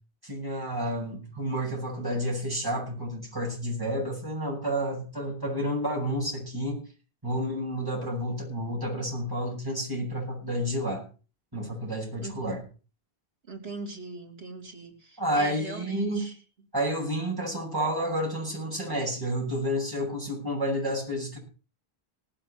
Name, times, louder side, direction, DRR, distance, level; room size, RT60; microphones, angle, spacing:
voice 1, 0.2-6.8 7.2-11.0 11.5-12.6 15.2-16.3 16.7-21.4, equal, 20° right, -4 dB, 7.8 m, -30 dB
voice 2, 13.5-16.3, right 2 dB, 75° right, 0 dB, 3.1 m, -40 dB
18.5 x 7.8 x 5.8 m, 0.35 s
omnidirectional pair, 1.0 m